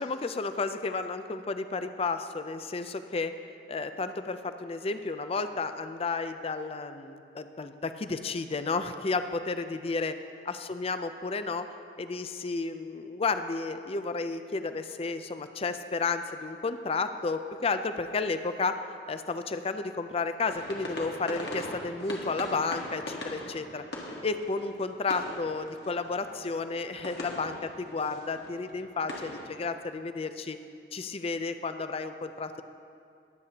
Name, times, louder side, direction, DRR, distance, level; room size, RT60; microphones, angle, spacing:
voice 1, 0.0-3.3 3.7-10.1 10.5-11.7 12.0-18.7 19.1-23.8 24.2-30.6 30.9-32.6, left 4 dB, 35° left, 9 dB, 0.5 m, -32 dB
sound 1, 20.5-29.6, left 1 dB, 70° left, 1.5 m, -41 dB
21.5 x 8.2 x 2.9 m, 2.4 s
head